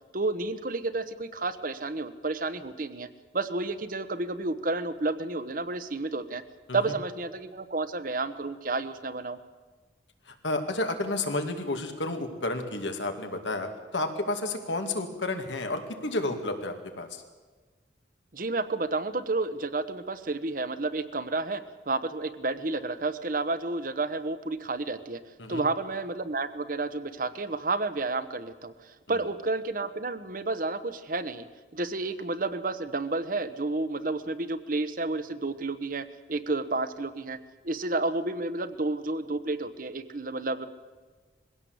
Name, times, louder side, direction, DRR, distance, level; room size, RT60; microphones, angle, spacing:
voice 1, 0.1-3.1 3.3-6.4 6.7-9.4 18.3-25.2 25.5-31.5 31.7-37.4 37.6-40.7, right 3 dB, 50° right, 12 dB, 1.1 m, -31 dB
voice 2, 10.3-17.2 25.4-25.6 29.1-29.2, left 2 dB, 90° left, 5 dB, 2.4 m, -31 dB
21.0 x 16.5 x 8.0 m, 1.4 s
head